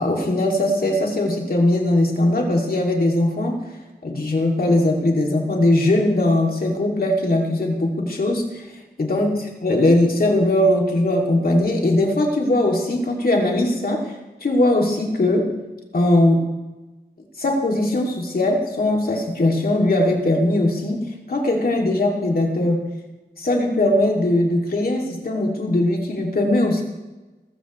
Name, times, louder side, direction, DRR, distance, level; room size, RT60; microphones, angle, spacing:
voice 1, 0.0-3.6 4.0-8.6 9.0-15.5 15.9-16.4 17.4-22.8 23.4-26.8, left 1 dB, 55° left, 0 dB, 2.6 m, -20 dB
21.0 x 14.5 x 3.2 m, 1.1 s
wide cardioid pair, 105°, 18 cm